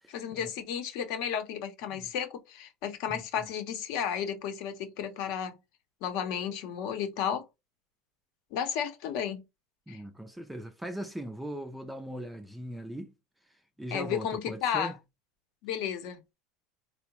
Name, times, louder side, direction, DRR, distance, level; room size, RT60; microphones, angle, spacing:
voice 1, 0.1-5.6 6.0-7.5 8.5-9.4 9.9-10.0 13.9-14.9 15.6-16.3, left 8 dB, 60° left, 0.7 m, -33 dB
voice 2, 9.9-13.1 13.8-15.0, right 1 dB, 5° right, 0.4 m, -39 dB
3.6 x 2.0 x 2.9 m
supercardioid pair, 150°, 0 cm